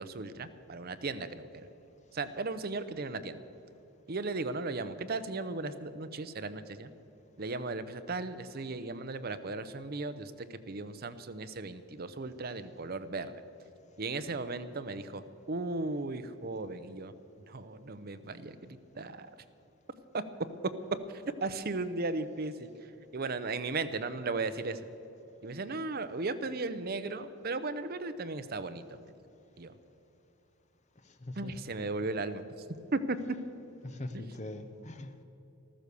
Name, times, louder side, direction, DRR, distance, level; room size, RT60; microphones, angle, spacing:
voice 1, 0.0-1.7 2.1-3.4 4.1-6.9 7.4-13.3 14.0-15.2 15.5-17.1 17.5-19.3 20.1-20.2 21.1-24.8 25.4-29.1 29.6-29.7 31.4-32.4 32.9-33.2 34.1-34.3, right 3 dB, 45° right, 12 dB, 0.7 m, -36 dB
voice 2, 31.2-31.5 33.8-35.2, left 1 dB, 30° left, 8 dB, 0.9 m, -41 dB
14.0 x 14.0 x 6.9 m, 3.0 s
head